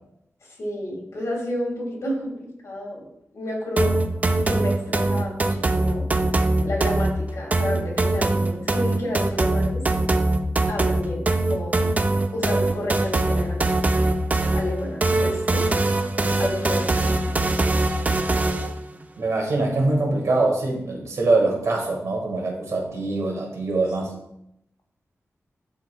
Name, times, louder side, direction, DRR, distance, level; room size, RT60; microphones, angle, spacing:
voice 1, 0.4-3.1 3.3-4.0 4.4-6.1 6.6-9.8 10.7-11.8 12.3-14.0 14.5-15.7 16.4-17.2, left 1 dB, 80° left, -1 dB, 1.9 m, -30 dB
sound 1, 3.8-18.8, right 2 dB, 30° right, 0.4 m, -22 dB
voice 2, 19.2-24.1, right 2 dB, 85° right, 0 dB, 1.6 m, -23 dB
10.5 x 4.0 x 2.3 m, 0.78 s
wide cardioid pair, 130°, 5 cm